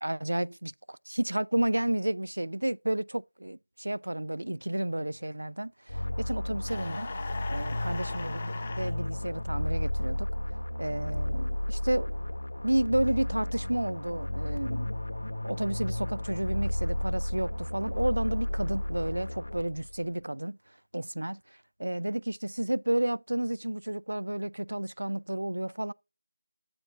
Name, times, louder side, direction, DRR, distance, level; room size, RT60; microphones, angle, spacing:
voice 1, 0.0-7.1 7.5-10.3 10.8-12.1 12.6-20.6 20.9-25.9, right 1 dB, 80° right, 0.4 m, -31 dB
sound 1, 5.9-20.0, left 1 dB, 90° left, 2.1 m, -33 dB
sound 2, 6.7-8.9, left 3 dB, 20° left, 1.4 m, -39 dB
14.5 x 4.8 x 2.4 m
figure-of-eight pair, 175°, 0 cm